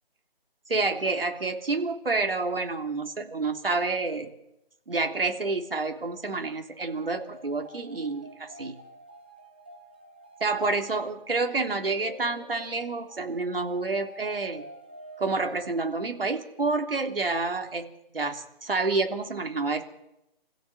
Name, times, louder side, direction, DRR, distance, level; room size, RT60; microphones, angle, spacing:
voice 1, 0.7-4.3 4.9-8.8 10.4-14.7 15.2-17.9 18.1-19.8, right 3 dB, 70° right, 4 dB, 3.5 m, -28 dB
sound 1, 6.8-16.5, right 1 dB, 10° right, 1.1 m, -49 dB
27.0 x 16.0 x 7.5 m, 0.86 s
hypercardioid pair, 180°, 30 cm